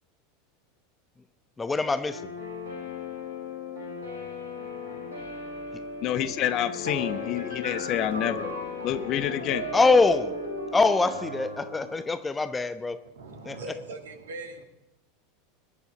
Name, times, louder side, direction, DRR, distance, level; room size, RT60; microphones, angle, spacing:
voice 1, 1.6-2.3 9.7-10.3 10.7-13.0 13.5-13.6, left 3 dB, 15° left, 11 dB, 0.8 m, -23 dB
Guitar, 2.1-10.8, left 5 dB, 70° left, 7.9 m, -38 dB
voice 2, 6.0-8.5 8.8-9.7, left 11 dB, 45° left, 12 dB, 1.1 m, -28 dB
sound 1, 6.8-12.1, equal, 90° left, 2.4 m, -37 dB
voice 3, 13.0-14.6, right 2 dB, 70° right, 5 dB, 2.3 m, -40 dB
21.0 x 11.0 x 4.9 m, 0.91 s
figure-of-eight pair, 80°, 0 cm